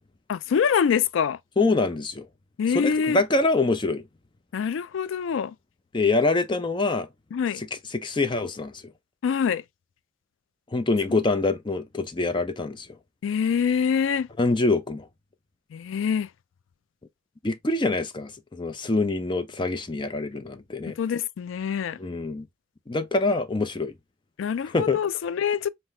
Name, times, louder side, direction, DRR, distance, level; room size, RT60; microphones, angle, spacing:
voice 1, 0.3-1.4 2.6-3.2 4.5-5.5 7.3-7.6 9.2-9.6 13.2-14.3 15.7-16.3 21.0-22.0 24.4-25.7, left 7 dB, 80° left, 0.3 m, -25 dB
voice 2, 1.6-2.3 2.7-4.0 5.9-7.1 7.6-7.7 7.9-8.8 10.7-12.9 14.4-15.1 17.4-21.0 22.0-22.5 22.9-23.9 24.7-25.0, left 3 dB, 25° left, 0.5 m, -25 dB
5.6 x 2.1 x 3.1 m
head